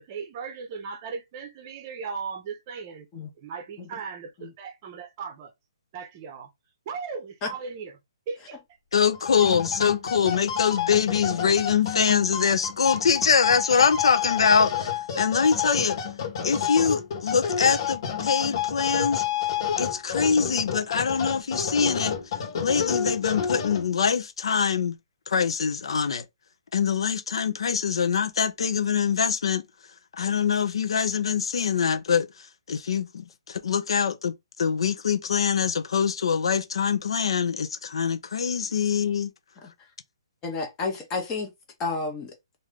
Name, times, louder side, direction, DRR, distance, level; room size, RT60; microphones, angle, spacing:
voice 1, 0.0-3.1 3.4-5.5 5.9-6.5 6.9-8.0 8.3-8.6, right 5 dB, 25° right, 0.8 m, -37 dB
voice 2, 8.9-16.0 16.4-19.2 19.8-22.2 22.6-25.0 25.3-26.2 26.7-29.6 30.2-39.3, left 6 dB, 65° left, 0.7 m, -24 dB
sound 1, 9.1-24.1, left 8 dB, 50° left, 1.3 m, -30 dB
voice 3, 40.4-41.5 41.8-42.3, left 3 dB, 15° left, 0.8 m, -31 dB
3.1 x 2.6 x 3.5 m
hypercardioid pair, 170°, 3 cm